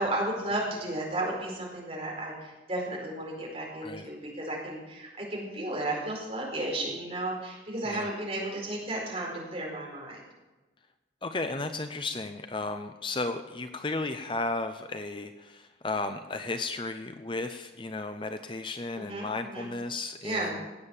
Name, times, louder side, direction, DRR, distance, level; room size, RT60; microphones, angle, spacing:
voice 1, 0.0-10.2 19.0-19.7 20.2-20.5, right 1 dB, 35° right, -2 dB, 4.7 m, -33 dB
voice 2, 11.2-20.7, left 3 dB, 25° left, 8 dB, 0.7 m, -34 dB
16.5 x 8.6 x 7.2 m, 1.1 s
head